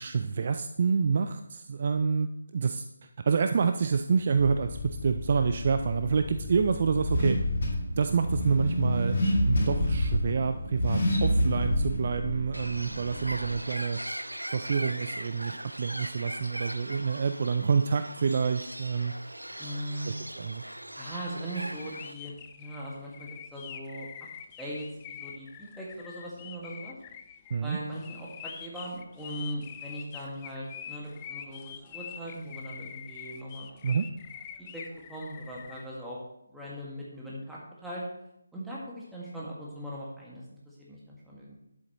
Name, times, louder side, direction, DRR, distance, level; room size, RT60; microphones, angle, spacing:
voice 1, 0.0-7.4 8.0-9.2 9.5-14.0 14.5-19.1 20.1-20.6 27.5-27.8 33.8-34.1, right 5 dB, 40° right, 8 dB, 0.4 m, -28 dB
Car / Accelerating revving vroom, 4.4-13.6, left 1 dB, 50° left, 3.7 m, -29 dB
Bird, 12.5-22.1, right 1 dB, 90° right, 0.6 m, -40 dB
voice 2, 19.6-20.2 21.0-24.1 24.6-25.5 25.8-26.9 27.6-33.7 34.6-34.8 35.1-36.2 36.5-38.0 38.5-41.6, right 1 dB, 5° right, -6 dB, 1.9 m, -39 dB
sound 1, 21.6-35.9, left 9 dB, 20° left, 0.4 m, -45 dB
11.0 x 7.8 x 3.0 m, 0.79 s
figure-of-eight pair, 155°, 0 cm